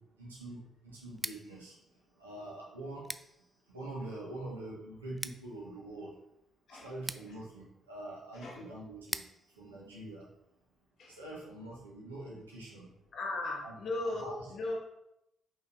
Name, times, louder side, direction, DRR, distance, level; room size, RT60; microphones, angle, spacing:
voice 1, 0.2-1.7 2.2-3.1 3.7-6.1 6.8-9.2 9.6-10.2 11.2-12.9 13.6-13.7 14.0-14.4, right 1 dB, 90° right, -7 dB, 1.9 m, -44 dB
Scissors, 1.1-10.9, right 1 dB, 5° right, 0.5 m, -47 dB
voice 2, 6.7-7.4 8.3-8.7 11.0-11.2 13.1-14.8, left 2 dB, 55° left, 0 dB, 1.9 m, -38 dB
6.1 x 5.6 x 4.3 m, 0.84 s
figure-of-eight pair, 40°, 0 cm